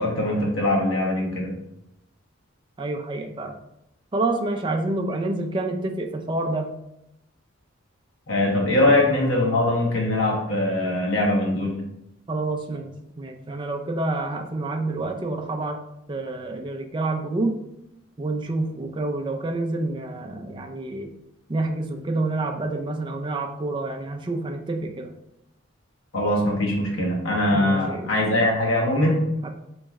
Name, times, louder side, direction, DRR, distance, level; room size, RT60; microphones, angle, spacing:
voice 1, 0.0-1.5 8.3-11.8 26.1-29.3, left 1 dB, 85° left, -2 dB, 1.1 m, -22 dB
voice 2, 2.8-3.5 4.1-6.7 12.3-15.8 16.1-17.6 18.2-21.2 21.5-25.1 27.5-28.1 29.4-29.5, right 2 dB, 25° right, 3 dB, 0.4 m, -28 dB
4.3 x 3.0 x 3.5 m, 0.84 s
head